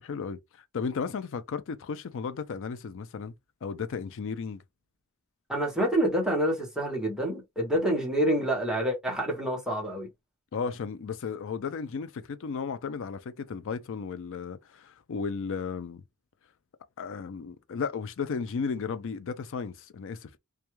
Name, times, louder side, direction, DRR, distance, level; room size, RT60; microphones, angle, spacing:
voice 1, 0.0-3.3 3.6-4.6 10.5-16.0 17.0-20.4, left 5 dB, 60° left, 0.4 m, -34 dB
voice 2, 5.5-10.1, right 1 dB, 5° right, 0.9 m, -27 dB
2.3 x 2.2 x 3.0 m
head